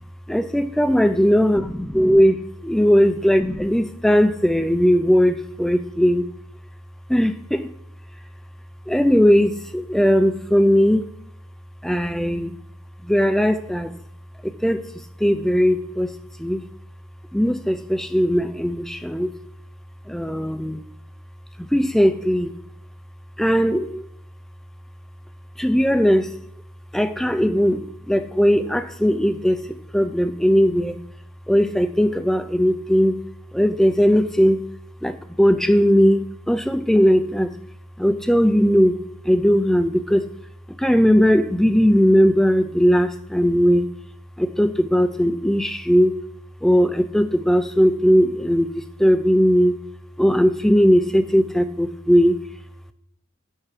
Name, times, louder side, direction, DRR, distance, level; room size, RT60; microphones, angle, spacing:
voice 1, 0.3-2.4 2.6-6.2 7.1-7.7 8.9-11.0 11.8-12.5 13.1-13.9 14.4-14.8 15.2-16.1 16.4-16.6 17.3-19.3 20.1-20.8 21.7-22.5 23.4-24.0 25.6-26.3 26.9-27.8 28.1-29.6 29.9-31.0 31.5-33.2 33.5-34.6 35.0-35.1 35.4-37.5 38.0-38.9 39.3-40.2 40.8-43.9 44.4-46.1 46.6-48.7 49.0-49.7 50.2-52.3, equal, ahead, 11 dB, 0.4 m, -18 dB
7.3 x 5.8 x 4.9 m, 0.76 s
head